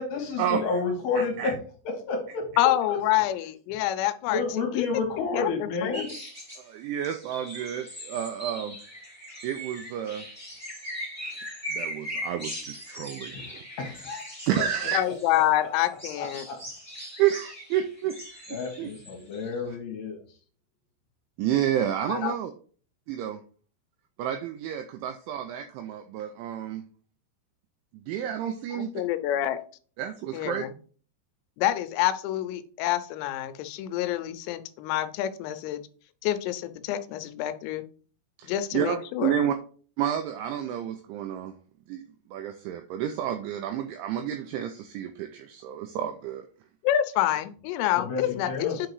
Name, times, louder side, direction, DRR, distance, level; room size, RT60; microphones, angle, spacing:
voice 1, 0.0-1.6 1.8-2.5 2.9-3.0 4.3-6.1 13.8-14.2 16.2-16.6 18.5-20.2 48.0-48.9, left 4 dB, 65° left, 1 dB, 3.2 m, -30 dB
voice 2, 1.1-1.5 6.6-8.8 9.4-10.3 11.2-11.3 11.7-13.6 14.5-15.0 17.2-18.3 18.8-18.9 21.4-22.5 23.1-23.4 24.2-26.8 28.1-28.9 30.0-30.6 38.4-39.6 40.0-41.5 41.9-46.4, right 10 dB, 90° right, 7 dB, 2.7 m, -30 dB
voice 3, 2.6-4.4 4.8-4.9 5.3-6.0 14.9-16.5 22.1-22.4 28.7-29.6 30.3-30.7 31.6-35.8 36.2-37.8 38.4-39.4 46.8-48.9, left 13 dB, 90° left, 11 dB, 3.4 m, -27 dB
sound 1, 5.9-6.6 7.0-15.5 15.8-19.5, equal, 25° right, 0.3 m, -40 dB
8.7 x 3.8 x 4.7 m, 0.43 s
omnidirectional pair, 6.0 m